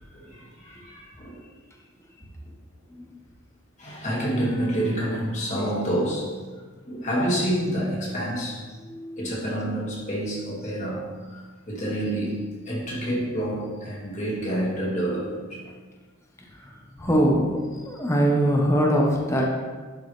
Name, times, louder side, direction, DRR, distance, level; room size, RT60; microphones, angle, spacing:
voice 1, 0.1-1.5 3.8-6.4 6.9-8.7 9.2-15.6, right 1 dB, 35° left, -5 dB, 2.1 m, -28 dB
voice 2, 8.8-9.2 16.6-16.7 17.0-17.5 17.9-19.5, equal, 15° left, -1 dB, 0.9 m, -22 dB
11.0 x 4.7 x 3.2 m, 1.4 s
head